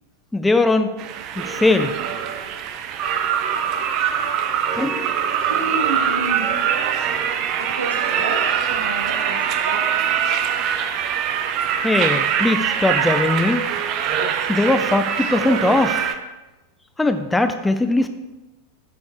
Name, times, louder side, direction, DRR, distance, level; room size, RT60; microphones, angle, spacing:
voice 1, 0.3-1.0 1.4-1.9 4.8-5.0 11.8-13.6 14.5-16.1 17.0-18.1, left 2 dB, 5° left, 8 dB, 0.5 m, -20 dB
sound 1, 1.0-16.1, right 8 dB, 40° right, 0.7 m, -23 dB
voice 2, 5.4-6.5 7.6-10.4, right 2 dB, 75° right, 2 dB, 1.7 m, -30 dB
8.4 x 6.2 x 4.7 m, 1.1 s
figure-of-eight pair, 90°, 0 cm